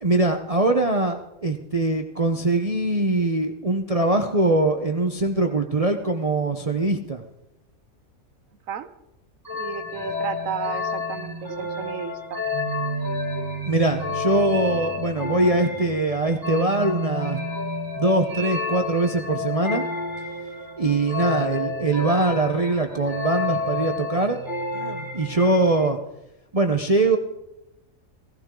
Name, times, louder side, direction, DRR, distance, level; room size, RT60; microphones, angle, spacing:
voice 1, 0.0-7.2 13.6-17.4 18.0-19.9 20.8-24.4 24.7-26.0 26.5-27.2, right 2 dB, 30° right, 5 dB, 0.8 m, -22 dB
sound 1, 9.4-25.9, left 3 dB, 15° right, 1.8 m, -30 dB
voice 2, 9.5-12.4, right 8 dB, 70° right, 11 dB, 1.2 m, -33 dB
17.0 x 16.0 x 3.8 m, 0.88 s
omnidirectional pair, 1.5 m